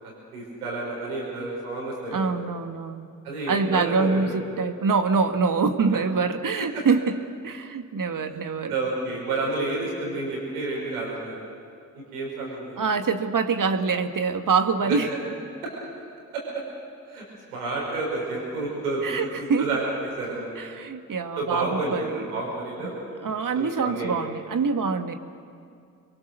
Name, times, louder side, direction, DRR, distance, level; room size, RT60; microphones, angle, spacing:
voice 1, 0.0-2.3 3.2-4.3 5.9-6.0 6.6-6.8 8.7-11.4 11.9-12.8 14.8-15.0 15.6-15.7 16.3-16.6 17.1-17.2 17.5-19.8 20.2-20.5 21.4-22.9 23.6-24.1, right 2 dB, 90° right, -3 dB, 5.7 m, -30 dB
voice 2, 2.1-3.1 3.5-7.2 7.4-8.7 12.8-15.1 19.0-19.7 20.6-22.2 23.2-25.1, right 5 dB, 45° right, 7 dB, 1.9 m, -25 dB
28.0 x 22.5 x 6.8 m, 2.4 s
hypercardioid pair, 40°, 43 cm